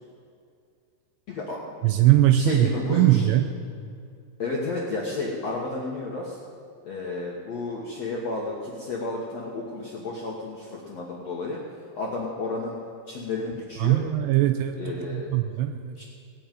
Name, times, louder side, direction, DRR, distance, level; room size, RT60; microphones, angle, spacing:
voice 1, 1.3-1.6 2.3-3.2 4.4-6.4 6.9-11.6 12.0-12.8 13.1-14.0 14.7-15.3 16.0-16.1, left 3 dB, 65° left, -3 dB, 1.6 m, -32 dB
voice 2, 1.8-3.4 13.8-16.0, right 13 dB, 85° right, 6 dB, 2.5 m, -21 dB
18.5 x 6.8 x 9.1 m, 2.3 s
omnidirectional pair, 5.3 m